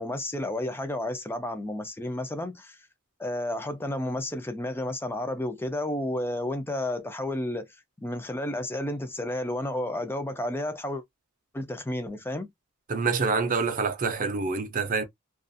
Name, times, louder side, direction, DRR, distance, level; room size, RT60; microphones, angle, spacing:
voice 1, 0.0-2.8 3.2-7.7 8.0-11.0 11.5-12.5, left 1 dB, 10° left, 0.5 m, -31 dB
voice 2, 12.9-15.0, right 4 dB, 40° right, 0.6 m, -26 dB
2.4 x 2.4 x 2.5 m
head